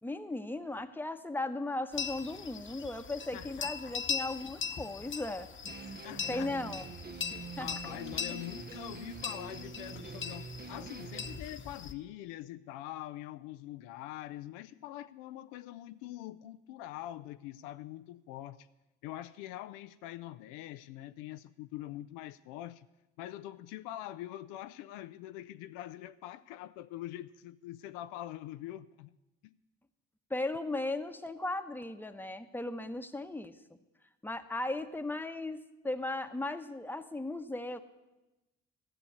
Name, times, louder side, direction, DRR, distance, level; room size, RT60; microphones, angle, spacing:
voice 1, 0.0-5.5 6.3-6.9 7.6-7.7 30.3-33.5 34.2-37.8, left 2 dB, 5° left, 1.0 m, -36 dB
sound 1, 1.9-11.9, left 6 dB, 40° left, 1.0 m, -40 dB
voice 2, 3.3-3.9 5.8-6.5 7.6-18.7 19.0-22.9 23.2-29.2 29.4-29.6, left 14 dB, 75° left, 0.5 m, -44 dB
sound 2, 5.6-11.4, right 5 dB, 30° right, 0.8 m, -45 dB
14.0 x 7.1 x 8.1 m
hypercardioid pair, 50°, 32 cm